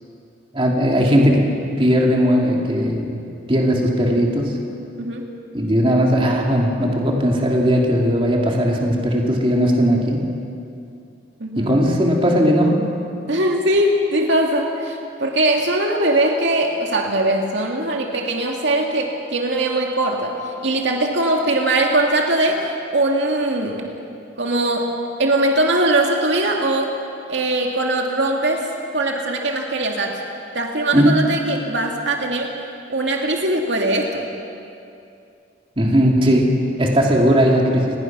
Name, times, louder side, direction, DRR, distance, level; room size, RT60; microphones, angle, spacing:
voice 1, 0.5-1.5 1.8-3.2 3.5-4.6 5.5-10.2 11.6-12.9 30.9-31.2 35.8-38.0, equal, 25° right, -1 dB, 2.8 m, -17 dB
voice 2, 11.4-11.7 13.3-23.9 24.4-24.9 25.2-26.9 27.3-28.7 28.9-30.2 30.5-32.5 32.9-34.3, right 1 dB, 65° right, 1 dB, 2.3 m, -21 dB
29.5 x 20.0 x 6.2 m, 2.6 s
head